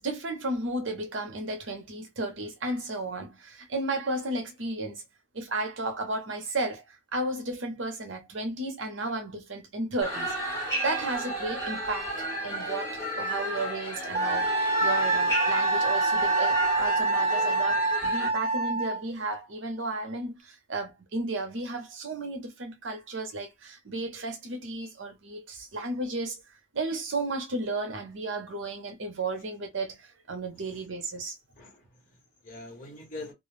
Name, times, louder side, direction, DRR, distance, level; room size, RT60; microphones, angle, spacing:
voice 1, 0.0-5.0 5.3-14.5 14.8-26.4 26.7-31.4, right 2 dB, 65° right, 0.8 m, -33 dB
sound 1, 10.0-18.3, right 1 dB, 15° left, 1.4 m, -32 dB
Wind instrument woodwind instrument, 14.1-19.0, right 2 dB, 30° right, 0.3 m, -26 dB
voice 2, 30.5-30.9 31.5-33.3, left 2 dB, 40° left, 1.2 m, -44 dB
2.4 x 2.2 x 3.2 m
head